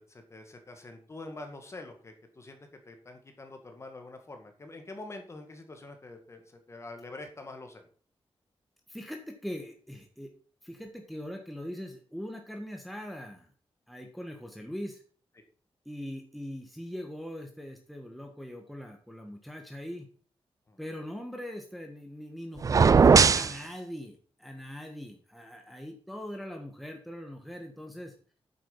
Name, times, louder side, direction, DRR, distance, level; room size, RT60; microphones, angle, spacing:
voice 1, 0.0-2.6 2.9-7.9 20.7-20.8, left 2 dB, 25° left, 5 dB, 1.9 m, -45 dB
voice 2, 8.9-10.3 10.6-13.5 13.9-15.0 15.8-20.1 20.8-28.1, equal, ahead, 3 dB, 1.5 m, -41 dB
sound 1, 22.6-23.6, right 5 dB, 35° right, 0.4 m, -18 dB
8.9 x 7.5 x 5.4 m, 0.43 s
wide cardioid pair, 150°, 10 cm